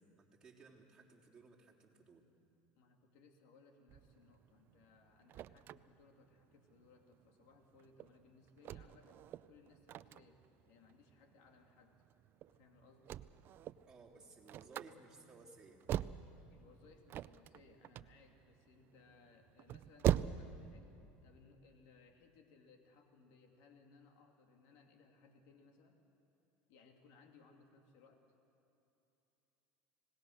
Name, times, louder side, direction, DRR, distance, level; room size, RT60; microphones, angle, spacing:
voice 1, 0.0-2.2 13.9-15.8, right 4 dB, 15° right, -5 dB, 3.7 m, -59 dB
voice 2, 2.7-12.0 12.5-13.1 16.5-20.9 21.2-26.0 26.7-28.2, left 4 dB, 70° left, 3 dB, 2.6 m, -65 dB
sound 1, 3.9-20.7, right 12 dB, 45° right, 0.5 m, -42 dB
26.0 x 18.5 x 6.5 m, 3.0 s
supercardioid pair, 120°, 5 cm